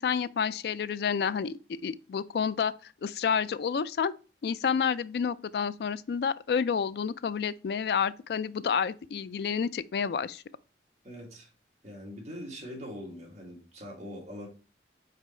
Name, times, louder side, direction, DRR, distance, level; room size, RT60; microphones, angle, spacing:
voice 1, 0.0-4.1 4.4-10.4, left 6 dB, 60° left, 0.3 m, -29 dB
voice 2, 11.0-11.5 11.8-14.5, equal, 40° right, 2.0 m, -42 dB
5.0 x 4.5 x 4.3 m
head